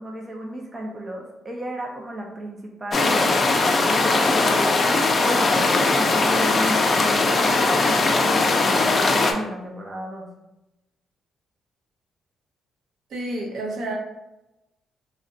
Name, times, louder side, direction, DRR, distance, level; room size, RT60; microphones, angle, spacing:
voice 1, 0.0-3.2 3.9-4.8 5.1-10.3, right 1 dB, 25° right, -1 dB, 0.5 m, -33 dB
sound 1, 2.9-9.3, left 3 dB, 40° left, 0.4 m, -20 dB
voice 2, 13.1-13.9, right 1 dB, 75° right, -2 dB, 0.7 m, -29 dB
2.4 x 2.1 x 3.7 m, 0.96 s
cardioid pair, 90°, 0 cm